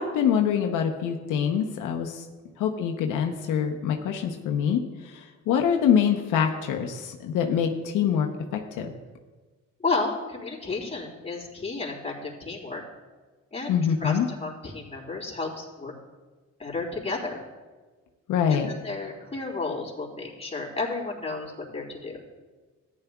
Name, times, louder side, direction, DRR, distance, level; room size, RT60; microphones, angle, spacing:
voice 1, 0.0-2.2 2.6-8.3 8.8-8.9 13.7-14.3 18.3-18.7, left 8 dB, 85° left, 3 dB, 0.9 m, -25 dB
voice 2, 9.8-12.8 13.5-13.7 14.0-15.9 16.6-17.4 18.5-18.6 18.8-22.2, left 3 dB, 20° left, -3 dB, 3.2 m, -32 dB
14.0 x 10.5 x 2.3 m, 1.3 s
cardioid pair, 90°, 30 cm